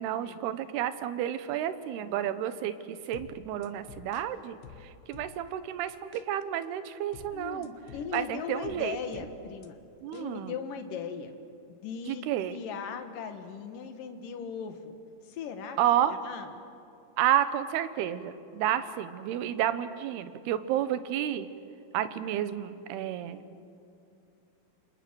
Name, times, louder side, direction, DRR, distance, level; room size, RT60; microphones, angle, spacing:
voice 1, 0.0-7.7 8.1-9.3 10.0-10.5 12.1-12.6 15.8-16.2 17.2-21.5 21.9-23.5, right 11 dB, 90° right, 12 dB, 3.0 m, -31 dB
sound 1, 3.1-5.7 6.1-6.3 7.1-9.7 10.1-10.3, left 7 dB, 80° left, 2.9 m, -50 dB
voice 2, 7.3-9.8 10.1-11.3 11.8-12.2 12.5-15.0 15.2-15.8 16.2-16.5, left 6 dB, 65° left, 7 dB, 2.9 m, -38 dB
28.0 x 27.5 x 6.2 m, 2.6 s
omnidirectional pair, 4.5 m